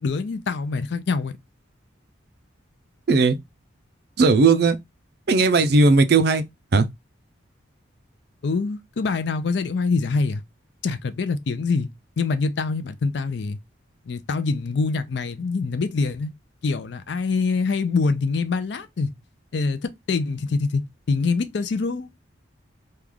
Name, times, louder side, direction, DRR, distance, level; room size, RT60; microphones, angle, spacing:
voice 1, 0.0-1.3 8.4-10.4 10.8-11.9 12.2-13.6 14.1-16.3 16.6-19.1 19.5-20.8 21.1-22.1, left 4 dB, 60° left, 0.4 m, -24 dB
voice 2, 4.2-4.8 5.3-6.4 6.7-6.9, right 3 dB, 55° right, 0.4 m, -17 dB
3.1 x 2.3 x 3.6 m
head